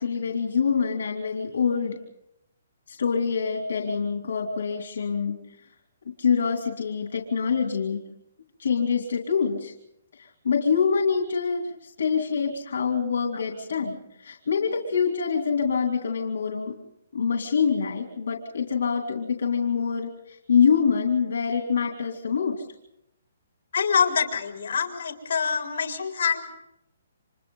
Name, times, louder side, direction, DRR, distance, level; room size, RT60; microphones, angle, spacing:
voice 1, 0.0-2.0 2.9-5.4 6.2-8.0 8.6-9.7 10.2-16.7 17.1-22.6, left 6 dB, 65° left, 2 dB, 2.8 m, -25 dB
voice 2, 23.7-26.4, left 6 dB, 45° left, 3 dB, 3.9 m, -25 dB
30.0 x 26.0 x 3.9 m, 0.81 s
hypercardioid pair, 180°, 0 cm